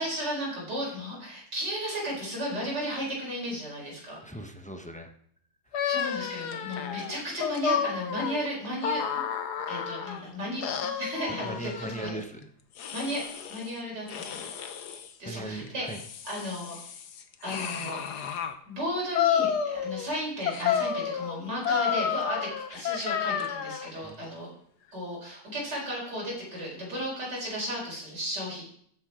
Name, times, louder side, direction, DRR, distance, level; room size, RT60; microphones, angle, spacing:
voice 1, 0.0-4.2 5.8-9.2 9.7-12.1 12.9-13.2 13.5-14.4 15.2-16.8 17.4-18.0 18.7-24.5 24.9-28.6, equal, 90° right, -4 dB, 5.3 m, -34 dB
voice 2, 4.2-5.1 11.4-12.5 15.2-16.0 20.6-20.7 24.0-24.2, right 1 dB, 5° left, 5 dB, 0.6 m, -39 dB
sound 1, 5.7-10.2 10.6-12.1 12.8-13.7 14.1-15.1 15.7-18.5 19.1-20.1 20.5-23.9, left 8 dB, 75° left, 1.5 m, -31 dB
14.0 x 6.7 x 5.0 m, 0.65 s
omnidirectional pair, 1.8 m